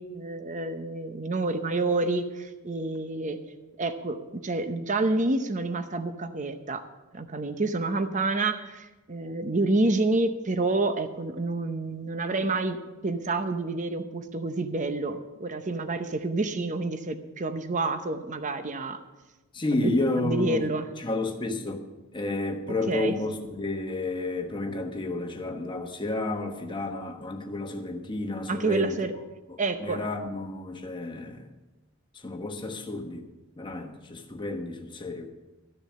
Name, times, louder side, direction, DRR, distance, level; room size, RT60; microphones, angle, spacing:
voice 1, 0.0-3.4 3.8-4.2 4.4-6.8 7.1-12.8 13.0-19.0 19.7-20.9 22.9-23.1 28.5-29.2 29.6-30.1, right 2 dB, 35° right, 9 dB, 0.8 m, -28 dB
voice 2, 19.5-20.7 21.0-21.8 22.1-29.0 29.5-31.5 32.2-33.3 33.6-35.3, left 2 dB, 20° left, 4 dB, 1.2 m, -31 dB
13.5 x 6.8 x 8.5 m, 1.1 s
head